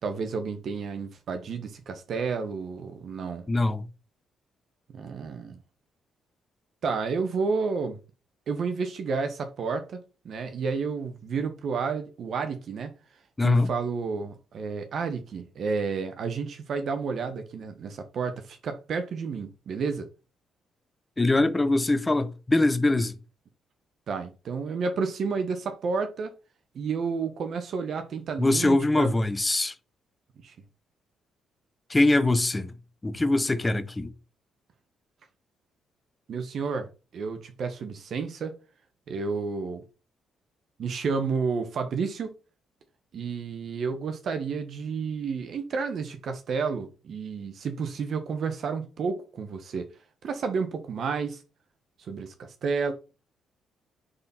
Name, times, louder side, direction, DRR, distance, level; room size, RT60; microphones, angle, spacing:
voice 1, 0.0-3.4 4.9-5.6 6.8-8.0 8.5-12.9 13.4-20.1 24.1-26.3 26.7-29.1 30.4-30.5 36.3-36.9 37.1-38.5 39.1-39.8 40.8-42.3 43.1-49.9 50.2-51.4 52.1-52.9, right 5 dB, 60° right, 1.4 m, -31 dB
voice 2, 3.5-3.9 13.4-13.7 21.2-23.1 28.4-29.7 31.9-32.7 33.0-34.1, left 2 dB, 20° left, 1.0 m, -23 dB
9.5 x 4.3 x 4.5 m
cardioid pair, 90°, 0 cm